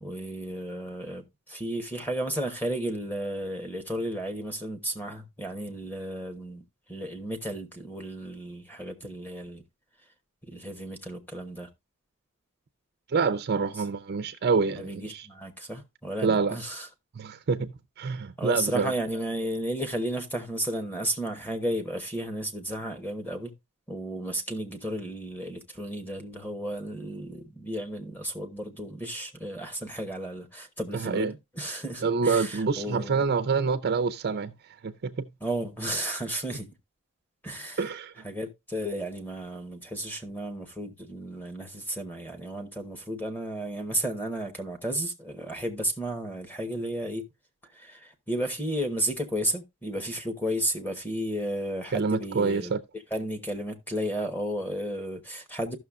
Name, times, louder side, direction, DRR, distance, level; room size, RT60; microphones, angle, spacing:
voice 1, 0.0-6.6 6.9-9.6 10.4-11.7 14.8-16.9 18.4-23.5 23.9-33.2 35.4-36.7 37.4-37.9 38.2-47.2 47.7-52.7 53.1-55.8, right 1 dB, 10° left, 1.0 m, -33 dB
voice 2, 13.1-15.2 16.2-16.6 17.2-17.7 18.0-18.9 30.9-31.3 32.0-34.5 34.8-35.3 37.8-38.1 51.9-52.8, right 5 dB, 45° right, 0.5 m, -26 dB
14.5 x 6.2 x 2.4 m
head